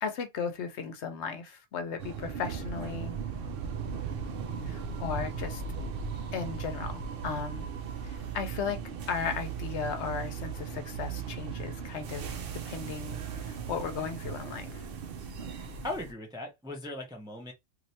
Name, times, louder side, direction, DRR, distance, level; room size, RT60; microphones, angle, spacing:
voice 1, 0.0-3.2 4.7-5.6 6.3-7.7 8.0-8.8 9.1-12.4 12.6-14.9, left 6 dB, 70° left, 0.9 m, -36 dB
sound 1, 2.0-16.1, right 6 dB, 55° right, 0.7 m, -37 dB
voice 2, 15.8-17.5, left 2 dB, 5° right, 0.5 m, -38 dB
3.1 x 2.6 x 2.7 m
omnidirectional pair, 1.3 m